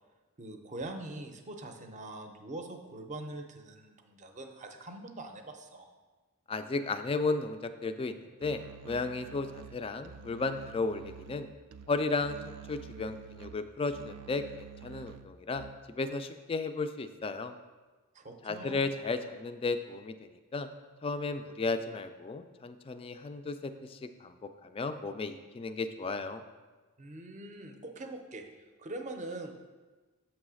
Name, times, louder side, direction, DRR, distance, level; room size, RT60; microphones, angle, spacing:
voice 1, 0.4-5.9 18.1-18.9 27.0-28.4 28.8-29.5, right 2 dB, 35° right, 5 dB, 0.6 m, -43 dB
voice 2, 6.5-11.5 11.9-12.4 12.7-17.5 18.4-20.7 21.0-26.4, left 3 dB, 25° left, 9 dB, 0.3 m, -34 dB
Musical instrument, 8.4-16.0, right 8 dB, 85° right, 0.3 m, -49 dB
7.5 x 3.1 x 6.2 m, 1.3 s
head